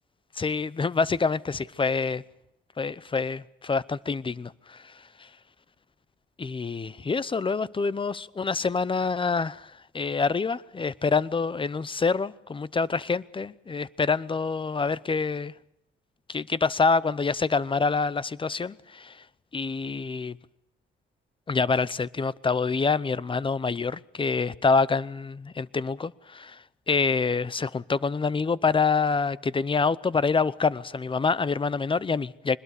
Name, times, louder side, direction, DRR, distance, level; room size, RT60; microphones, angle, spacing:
voice 1, 0.4-2.2 2.8-4.9 5.2-5.3 6.4-15.5 16.3-19.2 19.5-20.4 21.5-26.6 26.9-32.6, left 4 dB, 25° left, 0.8 m, -26 dB
23.5 x 21.0 x 6.7 m
cardioid pair, 90°, 20 cm